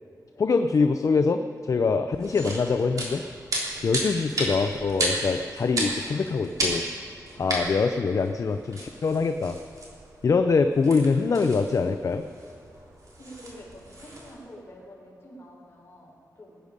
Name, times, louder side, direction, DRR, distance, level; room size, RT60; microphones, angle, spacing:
voice 1, 0.4-3.2 3.8-6.8 7.4-9.6 10.2-12.2, left 4 dB, 50° left, 8 dB, 0.5 m, -24 dB
sound 1, 2.1-14.3, right 1 dB, 55° right, 3.5 m, -34 dB
voice 2, 7.2-7.8 13.2-16.6, equal, 35° left, -3 dB, 4.2 m, -47 dB
20.5 x 9.9 x 5.2 m, 2.4 s
wide cardioid pair, 125°, 7 cm